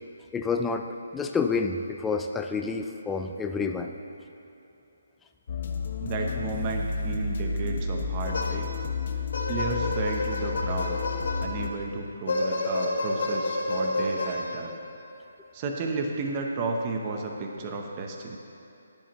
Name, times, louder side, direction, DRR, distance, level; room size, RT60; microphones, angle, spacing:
voice 1, 0.3-4.0, left 4 dB, 5° left, 4 dB, 0.4 m, -28 dB
sound 1, 5.5-11.7, left 4 dB, 45° left, 0.9 m, -31 dB
voice 2, 6.0-8.7 9.5-11.0 11.4-14.8 15.5-18.4, right 3 dB, 25° right, 2 dB, 0.8 m, -33 dB
sound 2, 8.2-8.9 9.3-11.7 12.3-14.9, left 2 dB, 65° left, 2.5 m, -30 dB
15.0 x 10.0 x 3.1 m, 3.0 s
hypercardioid pair, 170°, 0 cm